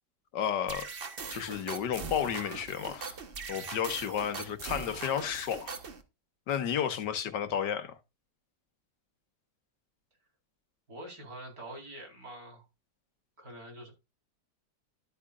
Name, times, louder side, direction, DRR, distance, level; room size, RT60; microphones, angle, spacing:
voice 1, 0.3-0.9 1.3-3.2 3.5-5.8 6.5-8.0, left 8 dB, 90° left, 1.7 m, -32 dB
sound 1, 0.7-6.0, right 4 dB, 35° right, 1.2 m, -41 dB
voice 2, 10.9-12.7 13.4-13.9, right 1 dB, 60° right, 4.8 m, -45 dB
13.0 x 8.5 x 2.4 m
omnidirectional pair, 1.8 m